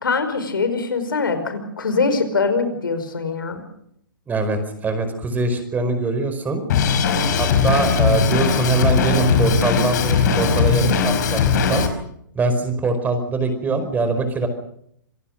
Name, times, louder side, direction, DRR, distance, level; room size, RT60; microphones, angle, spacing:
voice 1, 0.0-3.6, left 4 dB, 80° left, 9 dB, 5.1 m, -23 dB
voice 2, 4.3-6.6 7.4-11.4 11.7-11.9 12.3-14.5, right 3 dB, 15° right, 9 dB, 4.9 m, -22 dB
Drum kit, 6.7-11.9, left 6 dB, 60° left, 4.9 m, -19 dB
27.0 x 18.0 x 6.6 m, 0.72 s
hypercardioid pair, 125°, 11 cm